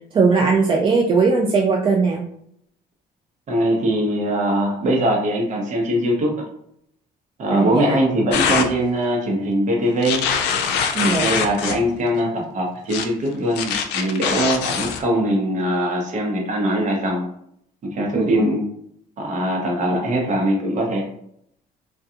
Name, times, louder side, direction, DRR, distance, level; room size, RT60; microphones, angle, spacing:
voice 1, 0.1-2.2 7.5-8.0 10.9-11.3 18.1-18.4, right 4 dB, 30° right, -1 dB, 0.4 m, -19 dB
voice 2, 3.5-6.4 7.4-10.3 11.0-17.3 17.8-18.6 19.2-21.1, right 1 dB, 45° right, 0 dB, 0.8 m, -21 dB
sound 1, 8.3-8.7 10.0-11.8 12.9-13.1 13.6-15.0, left 6 dB, 85° left, 0.4 m, -23 dB
2.3 x 2.2 x 2.7 m, 0.71 s
cardioid pair, 110°, 17 cm